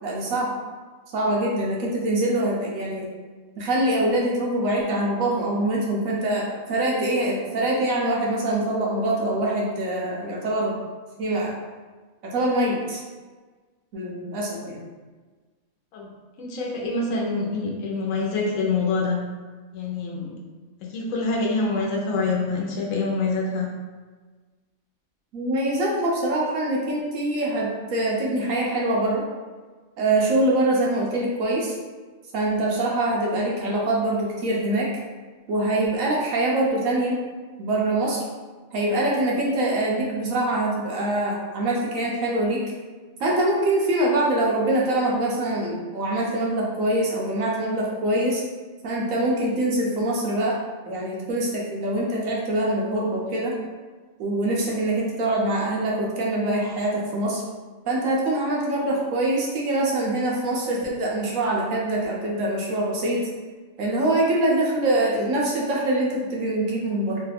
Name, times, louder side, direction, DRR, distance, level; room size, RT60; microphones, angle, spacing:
voice 1, 0.0-0.5 1.1-3.1 3.6-10.8 11.2-11.5 12.2-13.0 13.9-14.8 25.3-29.2 30.0-31.7 32.3-34.9 35.5-37.2 37.6-38.2 38.7-42.6 43.2-48.4 48.8-50.6 50.9-53.5 54.2-57.4 57.9-63.3 63.8-67.2, right 1 dB, 70° right, -3 dB, 1.1 m, -24 dB
voice 2, 16.4-19.2 19.7-20.3 20.8-23.7, left 3 dB, 70° left, -2 dB, 1.1 m, -26 dB
3.2 x 2.3 x 3.3 m, 1.4 s
omnidirectional pair, 1.5 m